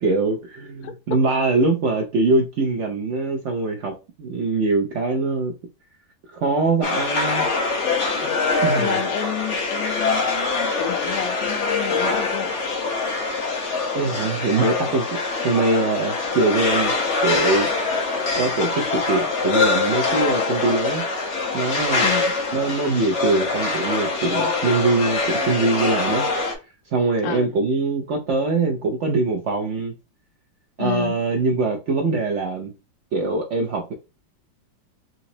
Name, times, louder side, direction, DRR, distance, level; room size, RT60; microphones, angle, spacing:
voice 1, 0.0-3.9 4.2-5.5 6.3-7.5 8.2-8.3 8.6-9.0 13.9-15.2 15.4-16.9 17.2-17.7 18.4-21.0 21.5-22.1 22.5-26.2 26.9-29.9 30.8-32.7 33.1-33.9, right 3 dB, 85° right, 0.6 m, -22 dB
voice 2, 0.8-1.2 8.7-12.5 22.0-22.3 27.2-27.5 30.8-31.1, left 11 dB, 75° left, 0.8 m, -30 dB
sound 1, 6.8-26.5, left 3 dB, 50° left, 1.0 m, -24 dB
4.0 x 2.9 x 2.6 m
omnidirectional pair, 2.0 m